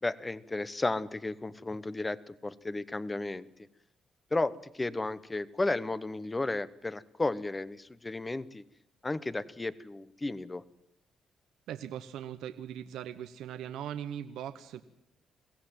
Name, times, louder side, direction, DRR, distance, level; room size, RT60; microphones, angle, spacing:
voice 1, 0.0-3.5 4.3-8.6 9.0-10.6, left 2 dB, 20° left, 16 dB, 1.0 m, -33 dB
voice 2, 11.7-14.8, right 10 dB, 85° right, 9 dB, 1.0 m, -40 dB
23.0 x 16.5 x 9.2 m, 0.84 s
cardioid pair, 90°, 0 cm